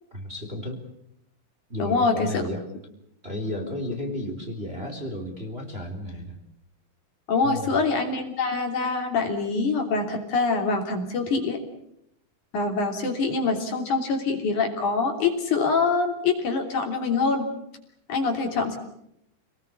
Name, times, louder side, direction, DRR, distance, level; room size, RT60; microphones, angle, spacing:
voice 1, 0.1-0.8 1.7-2.6 3.2-6.5 7.4-7.8, left 1 dB, 15° right, 3 dB, 3.3 m, -33 dB
voice 2, 1.8-2.4 7.3-11.6 12.5-17.5 18.1-18.8, left 4 dB, 60° left, 3 dB, 4.5 m, -25 dB
28.0 x 20.0 x 8.3 m, 0.77 s
omnidirectional pair, 4.1 m